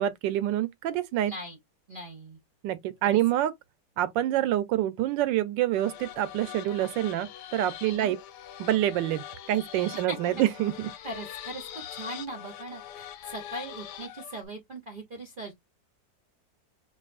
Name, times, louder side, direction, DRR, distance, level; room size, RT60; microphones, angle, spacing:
voice 1, 0.0-1.3 2.6-3.5 4.0-8.2 8.6-10.7, right 13 dB, 85° right, 1.3 m, -26 dB
voice 2, 1.3-1.6 1.9-2.4 3.0-3.2 7.8-8.1 9.9-10.2 11.0-15.5, right 1 dB, 45° right, 0.6 m, -40 dB
sound 1, 5.7-14.4, left 11 dB, 75° left, 1.1 m, -43 dB
4.7 x 2.6 x 2.4 m
omnidirectional pair, 2.0 m